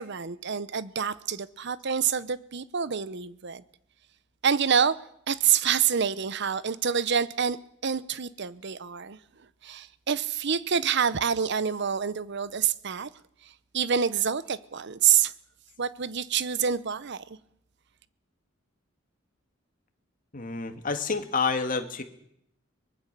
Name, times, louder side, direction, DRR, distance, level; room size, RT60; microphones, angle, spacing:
voice 1, 0.0-3.6 4.4-4.9 5.3-7.6 7.8-9.2 9.6-13.1 13.4-15.3 15.8-17.2, right 7 dB, 60° right, 0.8 m, -27 dB
voice 2, 20.3-22.0, left 4 dB, 45° left, 1.9 m, -28 dB
23.5 x 20.0 x 6.8 m
head